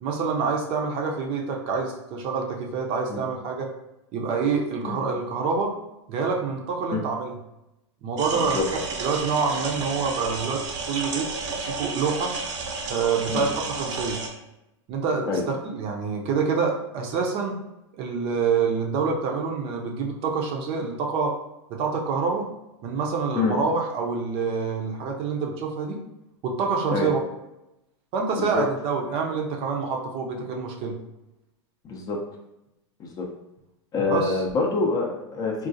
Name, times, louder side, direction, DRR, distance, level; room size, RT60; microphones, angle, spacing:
voice 1, 0.0-3.7 4.1-5.7 6.1-7.3 8.0-8.6 9.0-10.6 10.9-11.3 11.7-12.3 12.9-14.2 14.9-17.6 18.0-21.3 21.7-22.5 22.8-26.0 26.4-27.2 28.1-31.0 34.1-34.4, right 5 dB, 35° right, 1 dB, 0.5 m, -26 dB
sound 1, 8.2-14.3, right 4 dB, 75° right, 0.7 m, -32 dB
voice 2, 28.3-28.7 31.8-32.2 33.0-33.3 33.9-35.7, left 4 dB, 25° left, 1 dB, 0.5 m, -26 dB
3.7 x 2.3 x 2.6 m, 0.91 s
hypercardioid pair, 130°, 16 cm